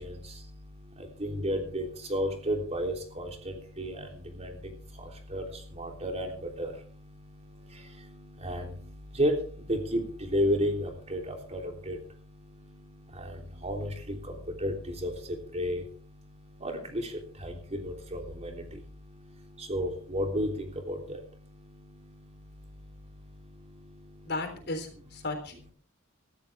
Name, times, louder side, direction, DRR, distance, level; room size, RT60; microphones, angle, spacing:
voice 1, 0.0-24.3, equal, 30° right, 3 dB, 3.3 m, -34 dB
voice 2, 24.3-25.7, left 2 dB, 55° left, 6 dB, 3.6 m, -35 dB
17.5 x 14.0 x 3.5 m, 0.42 s
head